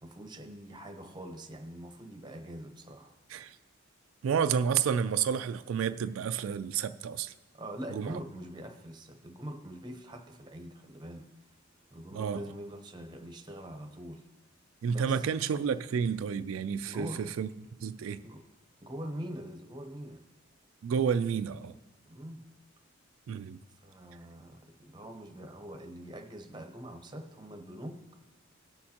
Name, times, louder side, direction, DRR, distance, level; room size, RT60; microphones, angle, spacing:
voice 1, 0.0-3.1 7.5-11.3 11.9-14.3 14.9-15.3 16.8-17.3 18.2-18.4 18.8-20.2 22.1-22.5 23.8-28.0, right 1 dB, 20° right, 5 dB, 0.8 m, -43 dB
voice 2, 4.2-7.3 7.9-8.2 12.1-12.4 14.8-17.5 17.8-18.2 20.8-21.7 23.3-23.6, right 7 dB, 80° right, 10 dB, 0.3 m, -30 dB
19.0 x 6.4 x 2.9 m, 1.1 s
head